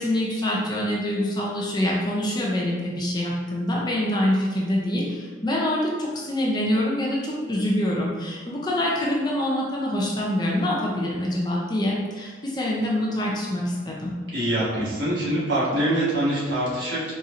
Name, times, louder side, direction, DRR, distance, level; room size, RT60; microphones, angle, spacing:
voice 1, 0.0-14.1, left 1 dB, 20° left, -4 dB, 0.5 m, -25 dB
voice 2, 14.3-17.1, right 1 dB, 70° right, -8 dB, 1.3 m, -24 dB
4.1 x 2.7 x 2.4 m, 1.4 s
head